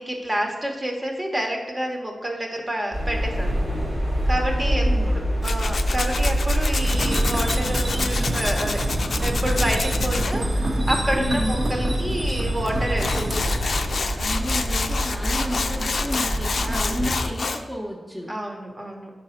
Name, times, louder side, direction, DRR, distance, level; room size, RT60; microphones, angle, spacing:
voice 1, 0.0-3.6 4.3-5.1 5.4-8.8 9.2-13.7 16.6-17.0 18.3-19.1, right 1 dB, 30° right, 1 dB, 1.1 m, -29 dB
sound 1, 2.9-17.2, equal, 70° right, 1.9 m, -25 dB
voice 2, 4.5-5.2 11.1-11.6 14.2-18.4, equal, ahead, -2 dB, 0.8 m, -31 dB
Tools, 5.4-10.3 12.7-12.8 13.0-17.6, left 4 dB, 70° left, 0.4 m, -28 dB
sound 2, 6.8-13.6, right 1 dB, 50° right, 1.1 m, -29 dB
4.7 x 4.1 x 5.8 m, 1.3 s
cardioid pair, 55°, 0 cm